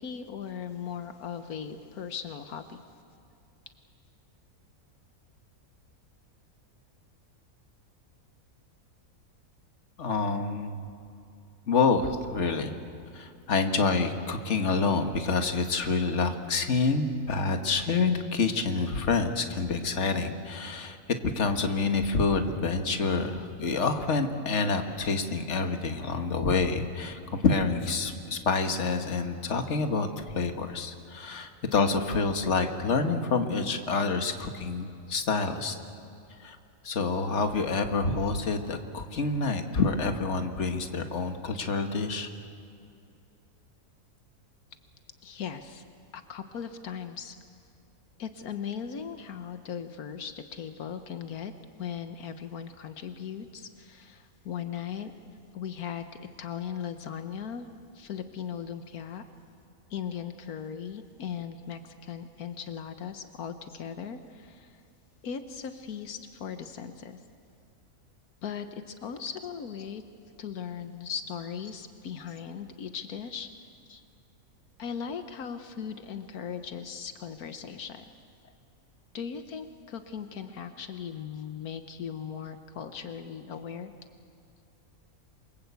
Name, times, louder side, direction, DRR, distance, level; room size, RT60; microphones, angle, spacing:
voice 1, 0.0-2.8 45.2-45.8 46.1-47.4 48.2-51.5 51.8-55.1 55.5-56.0 56.4-57.7 57.9-59.2 59.9-64.8 65.2-67.2 68.4-70.0 70.4-73.5 74.8-78.0 79.1-83.9, left 7 dB, 80° left, 8 dB, 1.5 m, -38 dB
voice 2, 10.0-10.9 11.7-12.7 13.1-21.0 21.4-35.8 36.4-36.6 36.8-42.3, left 4 dB, 50° left, 6 dB, 1.8 m, -27 dB
28.5 x 23.5 x 8.3 m, 2.6 s
omnidirectional pair, 1.5 m